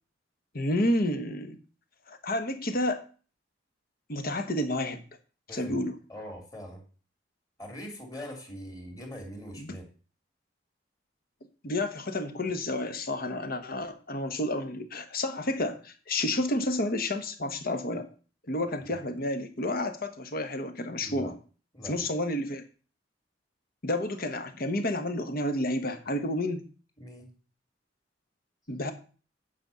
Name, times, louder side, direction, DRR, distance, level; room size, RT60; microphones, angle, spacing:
voice 1, 0.5-1.6 2.1-3.0 4.1-5.0 5.5-6.0 9.6-9.8 11.6-18.1 18.5-21.3 21.8-22.6 23.8-26.6 28.7-28.9, left 1 dB, 55° left, 8 dB, 1.3 m, -30 dB
voice 2, 6.1-6.8 7.6-9.8 21.0-21.3 21.7-22.0 27.0-27.3, equal, 20° left, 3 dB, 2.6 m, -42 dB
9.0 x 5.2 x 6.9 m, 0.39 s
head